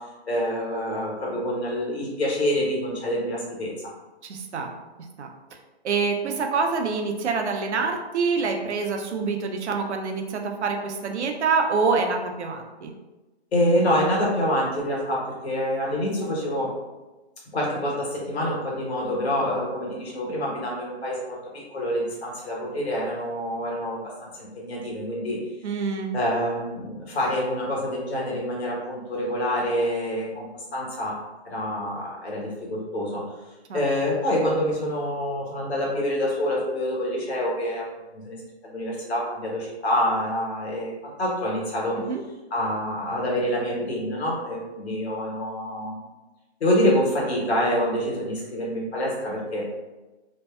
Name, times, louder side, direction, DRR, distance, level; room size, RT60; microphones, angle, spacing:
voice 1, 0.3-3.7 13.5-16.7 17.5-21.4 21.7-25.4 26.1-31.2 31.4-33.2 33.7-37.8 38.1-42.0 42.5-46.0 46.6-49.6, equal, 70° left, -4 dB, 1.0 m, -26 dB
voice 2, 4.2-4.7 5.2-5.3 5.8-12.9 25.6-26.1 33.7-33.8 42.1-42.2, right 4 dB, 80° right, 3 dB, 0.5 m, -26 dB
2.6 x 2.1 x 2.3 m, 1.1 s
hypercardioid pair, 175°, 34 cm